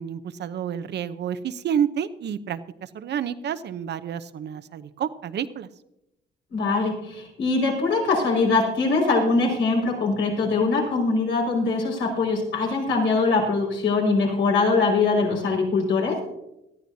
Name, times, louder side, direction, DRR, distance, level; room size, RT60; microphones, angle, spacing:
voice 1, 0.0-5.7, right 8 dB, 60° right, 12 dB, 0.8 m, -29 dB
voice 2, 6.5-16.2, left 3 dB, 75° left, -2 dB, 5.3 m, -22 dB
19.0 x 13.5 x 2.8 m, 0.87 s
cardioid pair, 90°, 20 cm